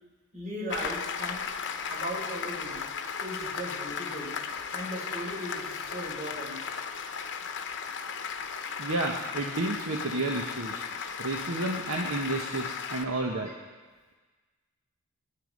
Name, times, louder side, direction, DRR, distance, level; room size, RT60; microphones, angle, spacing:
voice 1, 0.3-1.4 1.9-2.8 3.2-4.3 4.7-6.6, equal, 35° right, -6 dB, 6.2 m, -37 dB
Applause, 0.7-13.0, left 6 dB, 55° left, 0.9 m, -36 dB
voice 2, 8.8-10.9 11.2-13.5, right 2 dB, 65° right, 0 dB, 1.2 m, -31 dB
21.5 x 9.0 x 5.3 m, 1.4 s
head